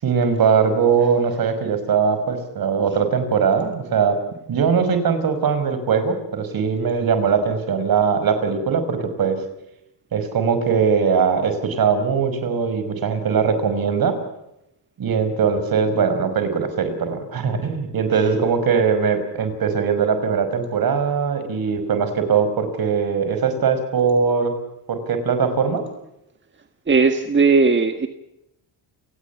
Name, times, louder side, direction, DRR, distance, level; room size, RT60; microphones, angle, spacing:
voice 1, 0.0-4.2 4.5-9.4 10.1-14.2 15.0-24.5 24.9-25.8, right 6 dB, 55° right, 9 dB, 5.6 m, -20 dB
voice 2, 26.9-28.1, right 4 dB, 25° right, 7 dB, 1.7 m, -17 dB
29.5 x 19.0 x 7.1 m, 0.86 s
cardioid pair, 130°, 43 cm